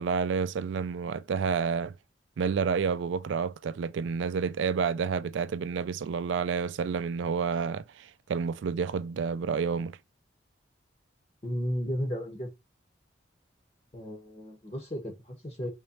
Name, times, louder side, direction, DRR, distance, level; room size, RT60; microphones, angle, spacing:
voice 1, 0.0-2.0 2.4-10.0, right 6 dB, 75° right, 0.3 m, -29 dB
voice 2, 11.4-12.5 13.9-15.7, equal, 35° left, 1.1 m, -34 dB
3.9 x 3.2 x 2.9 m
head